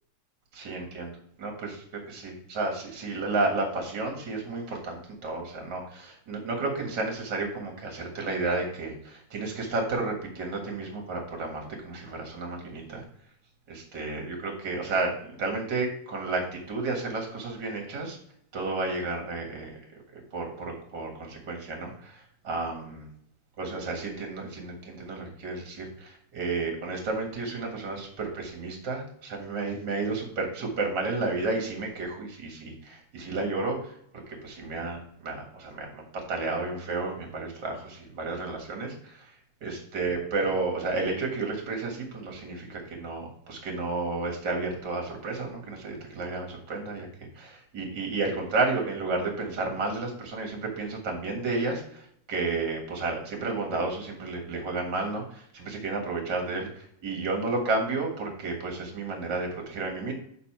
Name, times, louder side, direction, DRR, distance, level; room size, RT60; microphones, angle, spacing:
voice 1, 0.5-1.1 1.4-13.0 13.7-18.2 18.5-19.8 20.1-23.1 23.6-34.0 34.3-47.1 47.3-60.1, right 3 dB, 45° right, 2 dB, 1.9 m, -32 dB
6.7 x 4.8 x 4.4 m, 0.68 s
omnidirectional pair, 3.3 m